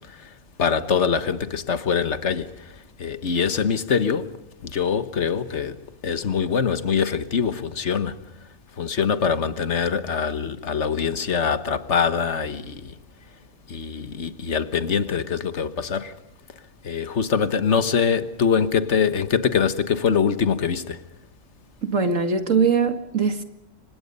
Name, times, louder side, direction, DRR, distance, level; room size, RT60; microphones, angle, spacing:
voice 1, 0.6-2.7 3.0-4.4 4.6-5.8 6.0-8.2 8.8-12.9 13.7-16.1 16.8-21.0, left 6 dB, 60° left, 1.6 m, -23 dB
voice 2, 21.8-23.4, right 5 dB, 80° right, 2.5 m, -21 dB
29.5 x 25.5 x 5.4 m
omnidirectional pair, 1.3 m